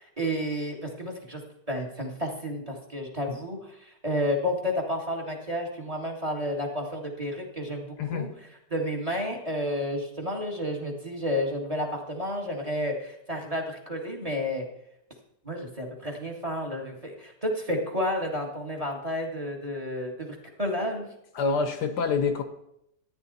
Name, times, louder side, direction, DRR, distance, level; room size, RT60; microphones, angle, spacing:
voice 1, 0.0-1.4 1.7-14.7 15.4-21.1, equal, 20° right, 1.8 m, -31 dB
voice 2, 8.0-8.3 21.3-22.4, left 5 dB, 70° left, 1.5 m, -26 dB
14.0 x 9.8 x 4.1 m
omnidirectional pair, 1.9 m